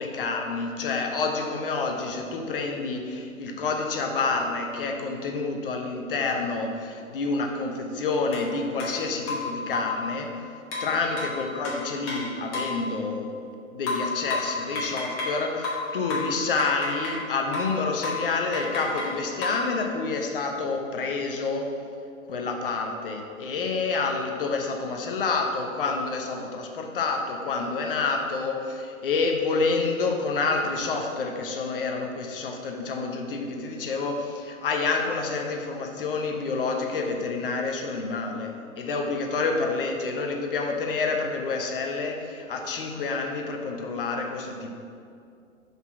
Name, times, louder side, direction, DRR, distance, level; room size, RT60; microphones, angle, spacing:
voice 1, 0.0-10.3 10.8-13.3 13.7-21.7 22.2-44.7, left 4 dB, 40° left, 2 dB, 1.0 m, -28 dB
sound 1, 8.3-8.5 8.8-8.9 9.3-10.0 10.7-12.8 13.9-15.4 15.6-17.3 17.5-17.8 18.0-18.3 18.5-19.7, left 3 dB, 25° left, 1.8 m, -31 dB
5.9 x 5.5 x 6.0 m, 2.4 s
figure-of-eight pair, 125°, 40 cm